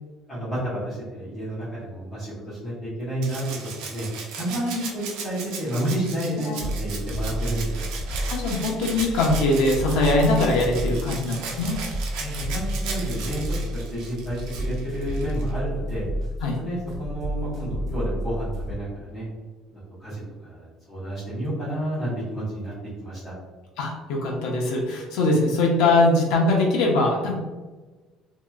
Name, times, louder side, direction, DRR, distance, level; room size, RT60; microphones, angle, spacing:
voice 1, 0.3-3.4 3.8-4.1 4.4-7.9 12.2-13.4 13.9-16.0 16.6-19.2 20.0-22.7 23.0-23.3, right 1 dB, 20° left, -12 dB, 1.2 m, -30 dB
Rattle (instrument), 3.2-15.5 16.9-17.0, right 5 dB, 75° right, 0.5 m, -37 dB
sound 1, 6.6-18.7, equal, 25° right, 1.2 m, -31 dB
voice 2, 8.3-11.8 16.4-16.6 23.8-27.4, left 2 dB, 85° left, -1 dB, 0.7 m, -22 dB
2.9 x 2.9 x 2.4 m, 1.3 s
cardioid pair, 155°, 0 cm